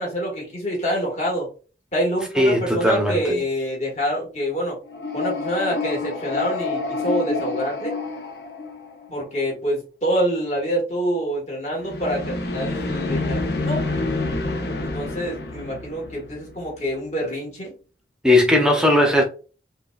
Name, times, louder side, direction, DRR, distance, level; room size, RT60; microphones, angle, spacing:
voice 1, 0.0-1.5 1.9-4.8 5.1-7.9 9.1-13.8 14.8-17.7, equal, 40° left, 1.6 m, -26 dB
voice 2, 2.3-3.4 18.2-19.2, left 1 dB, 5° right, 0.7 m, -18 dB
sound 1, 4.9-9.2 11.8-16.8, left 3 dB, 65° left, 0.8 m, -28 dB
5.4 x 2.2 x 2.4 m
head